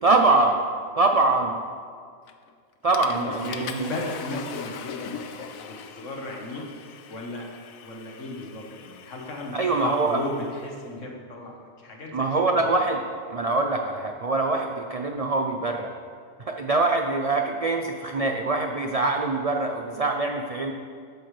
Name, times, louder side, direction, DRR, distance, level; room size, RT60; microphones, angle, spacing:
voice 1, 0.0-0.6 1.0-1.6 2.8-3.9 9.5-10.2 12.1-13.0 13.3-15.9 16.4-20.7, right 3 dB, 55° right, 3 dB, 0.4 m, -23 dB
Water / Toilet flush, 2.3-2.5 2.9-10.8, left 7 dB, 85° left, 1.1 m, -41 dB
voice 2, 3.1-6.6 7.1-7.5 7.8-12.8, left 2 dB, 65° left, 0 dB, 1.7 m, -35 dB
13.5 x 8.7 x 3.3 m, 2.1 s
omnidirectional pair, 1.4 m